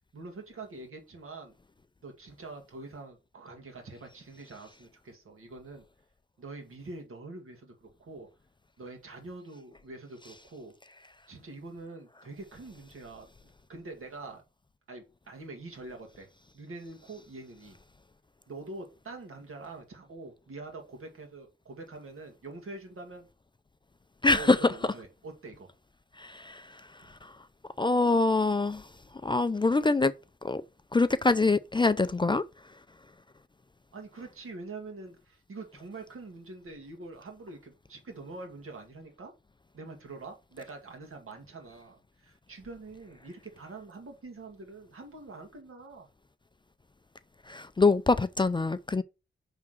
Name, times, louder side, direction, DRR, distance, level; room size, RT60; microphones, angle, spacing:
voice 1, 0.1-1.6 2.0-5.8 6.4-8.3 8.8-10.7 11.3-14.4 14.9-16.3 16.5-17.8 18.5-23.3 24.3-25.7 27.0-27.1 33.9-39.3 39.7-46.1, right 3 dB, 90° right, 2.1 m, -45 dB
voice 2, 24.2-24.7 26.2-26.7 27.2-27.3 27.8-28.8 29.2-30.1 30.4-30.6 30.9-32.4 47.5-49.0, left 3 dB, 20° left, 0.4 m, -24 dB
5.8 x 3.6 x 5.8 m
wide cardioid pair, 90°, 21 cm